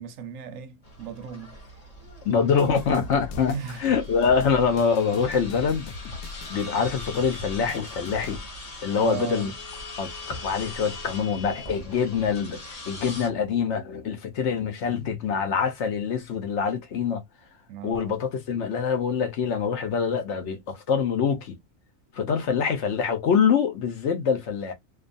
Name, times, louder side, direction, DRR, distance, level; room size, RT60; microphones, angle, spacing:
voice 1, 0.0-1.6 3.5-3.8 4.3-4.8 9.0-9.5 17.7-18.2, right 8 dB, 75° right, 0.9 m, -36 dB
sound 1, 0.8-13.3, left 2 dB, 30° left, 0.9 m, -41 dB
voice 2, 2.2-3.5 3.8-5.9 6.5-8.4 8.8-9.5 10.0-17.2 17.8-21.6 22.1-24.7, left 6 dB, 60° left, 1.0 m, -25 dB
sound 2, 2.6-8.4, left 4 dB, 90° left, 1.0 m, -40 dB
2.6 x 2.4 x 2.5 m
omnidirectional pair, 1.5 m